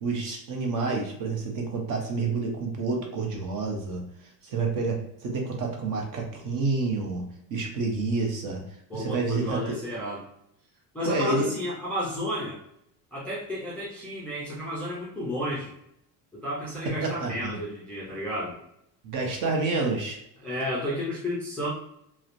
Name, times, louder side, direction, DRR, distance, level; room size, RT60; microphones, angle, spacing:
voice 1, 0.0-7.2 7.5-8.7 8.9-9.8 11.0-11.5 16.8-17.6 19.0-20.2, right 3 dB, 50° right, 1 dB, 0.7 m, -29 dB
voice 2, 8.9-10.2 10.9-12.6 13.1-15.7 16.3-18.6 20.4-21.7, equal, 5° left, -7 dB, 0.3 m, -32 dB
3.0 x 2.0 x 2.5 m, 0.76 s
cardioid pair, 155°, 42 cm